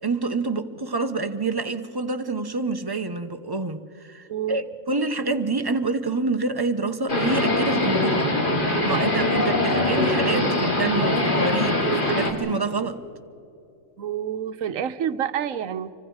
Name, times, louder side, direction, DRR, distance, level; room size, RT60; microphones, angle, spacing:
voice 1, 0.0-8.3 8.7-13.0, right 3 dB, 20° right, 0.8 m, -27 dB
voice 2, 4.3-4.6 14.0-15.9, right 9 dB, 80° right, 1.2 m, -28 dB
sound 1, 7.1-12.3, left 1 dB, 40° left, 2.5 m, -22 dB
26.5 x 25.0 x 4.8 m
omnidirectional pair, 1.4 m